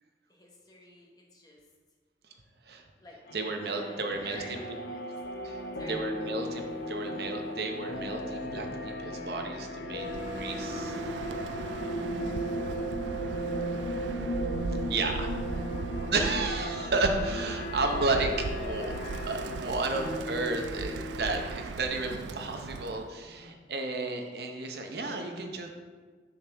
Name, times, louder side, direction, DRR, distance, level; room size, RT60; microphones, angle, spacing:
voice 1, 0.3-1.6 3.0-3.2 3.7-5.1 5.7-6.1 13.1-13.6 15.0-16.5, left 1 dB, 20° left, -2 dB, 1.1 m, -50 dB
sound 1, 3.3-20.2, right 1 dB, 60° left, 0.6 m, -37 dB
voice 2, 3.3-4.6 5.4-5.6 5.9-11.0 14.9-15.3 16.1-18.9 19.3-25.7, right 3 dB, 60° right, 4 dB, 0.8 m, -32 dB
sound 2, 5.2-21.3, left 2 dB, 75° left, 1.0 m, -41 dB
Bird, 10.0-23.1, right 4 dB, 80° right, 0.3 m, -38 dB
6.9 x 6.1 x 3.4 m, 1.5 s
head